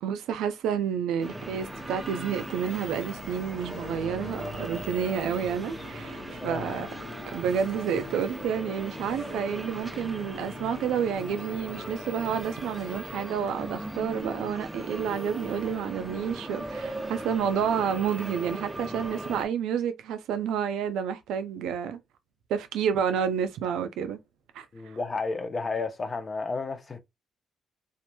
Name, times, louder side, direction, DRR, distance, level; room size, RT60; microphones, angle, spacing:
voice 1, 0.0-6.9 7.3-22.0 22.5-24.2 24.5-25.0, right 7 dB, 85° right, 0.4 m, -30 dB
sound 1, 1.2-19.5, right 1 dB, 10° right, 0.7 m, -39 dB
sound 2, 1.5-17.7, equal, 65° left, 0.9 m, -51 dB
sound 3, 3.6-12.4, left 9 dB, 85° left, 0.4 m, -48 dB
voice 2, 6.4-6.8 24.7-27.0, left 4 dB, 35° left, 0.6 m, -32 dB
2.9 x 2.3 x 2.2 m
cardioid pair, 90°, 0 cm